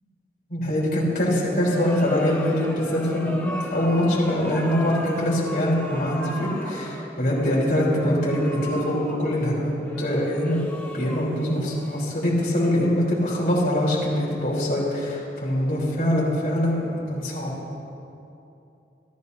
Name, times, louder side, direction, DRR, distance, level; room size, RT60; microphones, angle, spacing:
voice 1, 0.5-10.6 10.9-17.5, equal, 55° left, -6 dB, 4.0 m, -23 dB
sound 1, 1.5-12.5, left 1 dB, 10° left, 1.3 m, -37 dB
28.5 x 13.0 x 2.8 m, 2.8 s
head